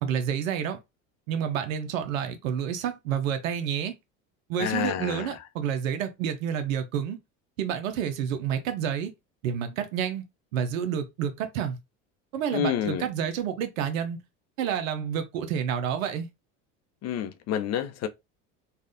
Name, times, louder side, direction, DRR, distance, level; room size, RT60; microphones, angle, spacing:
voice 1, 0.0-0.8 1.3-3.9 4.5-7.2 7.6-9.1 9.4-10.2 10.5-11.8 12.3-14.2 14.6-16.3, right 8 dB, 85° right, 0.6 m, -29 dB
voice 2, 4.6-5.4 12.5-13.1 17.0-18.1, left 9 dB, 40° left, 0.6 m, -29 dB
3.4 x 2.3 x 2.5 m
hypercardioid pair, 85°, 39 cm